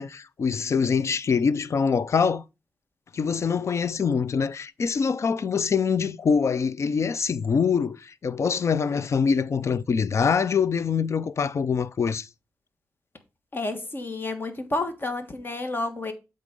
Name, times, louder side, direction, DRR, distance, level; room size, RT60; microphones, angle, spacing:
voice 1, 0.0-2.4 3.1-12.3, left 6 dB, 55° left, 0.5 m, -24 dB
voice 2, 13.5-16.1, left 2 dB, 35° left, 1.5 m, -30 dB
8.3 x 3.9 x 5.3 m
wide cardioid pair, 100°, 6 cm